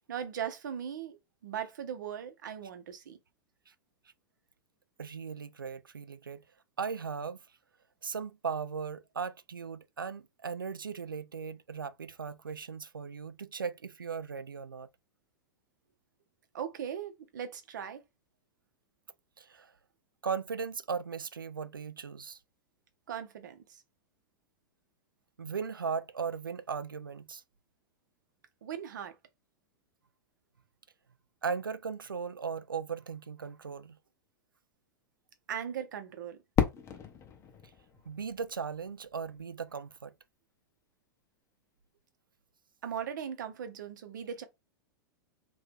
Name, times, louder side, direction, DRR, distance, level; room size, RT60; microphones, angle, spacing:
voice 1, 0.1-3.2 16.5-18.0 23.1-23.8 28.6-29.2 35.5-36.4 42.8-44.4, right 8 dB, 65° right, 0.8 m, -39 dB
voice 2, 5.0-6.4 6.8-7.4 8.0-14.9 19.4-19.7 20.2-22.4 25.4-27.4 31.4-34.0 38.1-40.1, right 6 dB, 85° right, 0.4 m, -37 dB
Fireworks, 36.6-39.4, left 8 dB, 25° left, 0.8 m, -34 dB
2.8 x 2.6 x 3.5 m
figure-of-eight pair, 95°, 11 cm